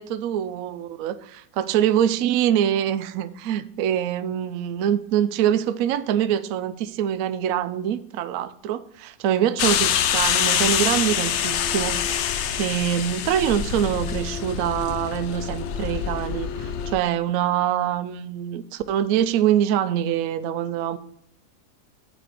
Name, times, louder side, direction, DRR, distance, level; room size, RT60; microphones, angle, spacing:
voice 1, 0.0-12.0 12.2-21.0, right 10 dB, 70° right, 11 dB, 0.9 m, -24 dB
sound 1, 9.6-17.0, left 9 dB, 70° left, 0.7 m, -25 dB
7.7 x 4.3 x 6.4 m, 0.70 s
omnidirectional pair, 1.7 m